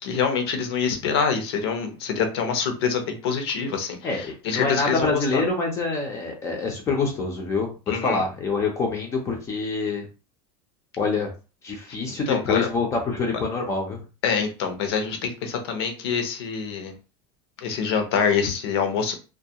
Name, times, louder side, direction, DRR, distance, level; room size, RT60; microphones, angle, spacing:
voice 1, 0.0-5.4 7.9-8.2 12.3-12.7 14.2-16.9 17.6-19.1, left 6 dB, 80° left, 5 dB, 0.7 m, -25 dB
voice 2, 4.0-7.7 8.0-10.1 11.0-11.3 11.6-14.0, left 3 dB, 20° left, 1 dB, 0.5 m, -26 dB
2.3 x 2.2 x 2.7 m, 0.32 s
supercardioid pair, 160°, 13 cm